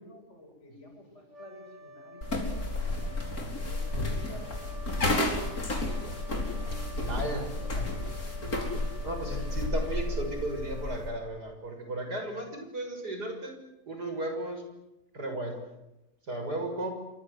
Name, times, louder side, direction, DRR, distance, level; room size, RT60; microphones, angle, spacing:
voice 1, 0.0-3.1 3.6-4.5 5.0-6.1 6.9-8.1, left 1 dB, 45° left, 2 dB, 7.9 m, -49 dB
sound 1, 1.2-11.9, left 3 dB, 45° right, 5.4 m, -48 dB
sound 2, 2.2-11.1, left 2 dB, 65° left, 5.2 m, -32 dB
voice 2, 7.0-7.5 9.0-13.5 13.9-14.6 15.1-15.6 16.3-16.9, right 1 dB, 90° right, 5 dB, 6.9 m, -34 dB
28.0 x 25.0 x 8.1 m, 0.94 s
omnidirectional pair, 1.7 m